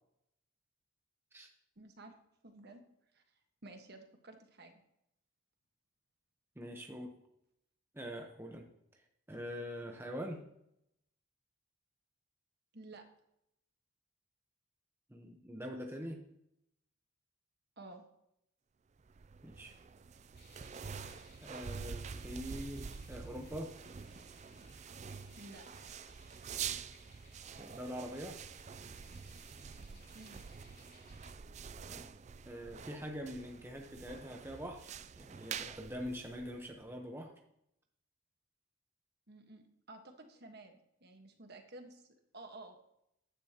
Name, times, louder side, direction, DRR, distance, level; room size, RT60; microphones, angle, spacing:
voice 1, 1.8-2.1 2.4-2.8 3.1-3.2 3.6-4.8 12.7-13.0 17.8-18.0 25.4-25.7 30.1-30.4 39.3-42.9, right 2 dB, 50° right, 4 dB, 1.4 m, -53 dB
voice 2, 6.6-7.2 7.9-8.7 8.9-10.4 15.1-16.2 19.4-19.7 21.4-23.8 27.6-28.4 31.9-32.1 32.4-37.3, equal, 10° right, 1 dB, 1.0 m, -44 dB
sound 1, 19.0-36.9, right 6 dB, 30° right, 0.3 m, -47 dB
sound 2, 20.3-31.3, left 2 dB, 50° left, 5.1 m, -63 dB
14.5 x 10.0 x 2.9 m, 0.77 s
head